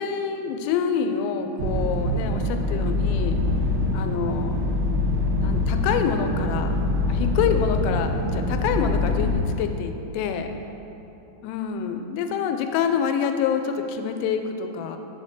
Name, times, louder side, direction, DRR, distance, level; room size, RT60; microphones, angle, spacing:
voice 1, 0.0-3.4 3.9-4.6 5.4-6.7 7.1-10.5 11.4-15.0, left 7 dB, 90° left, 6 dB, 3.1 m, -26 dB
sound 1, 1.6-9.3, left 2 dB, 80° right, 2.3 m, -24 dB
7.2 x 4.3 x 6.2 m, 2.9 s
omnidirectional pair, 5.7 m